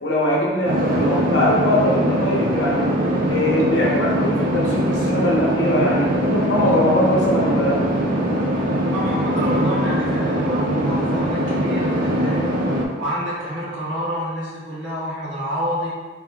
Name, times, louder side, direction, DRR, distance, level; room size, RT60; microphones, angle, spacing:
voice 1, 0.0-3.0 3.3-7.9, left 1 dB, 70° left, -4 dB, 0.9 m, -21 dB
sound 1, 0.7-12.9, equal, 50° right, 0.5 m, -21 dB
voice 2, 8.9-12.5 13.0-15.9, equal, 75° right, -5 dB, 1.0 m, -28 dB
3.6 x 3.0 x 2.3 m, 1.3 s
head